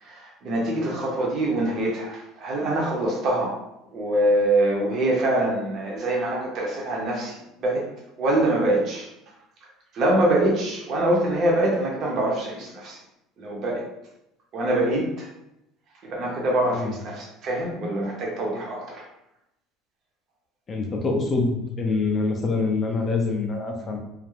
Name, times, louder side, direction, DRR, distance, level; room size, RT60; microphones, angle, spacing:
voice 1, 0.0-3.6 3.9-7.9 8.2-9.1 9.9-13.0 13.4-13.9 14.5-15.3 16.0-19.0, right 1 dB, 40° right, -2 dB, 0.6 m, -24 dB
voice 2, 20.7-24.0, left 3 dB, 25° left, 2 dB, 0.4 m, -25 dB
2.3 x 2.0 x 3.0 m, 0.84 s
cardioid pair, 160°, 0 cm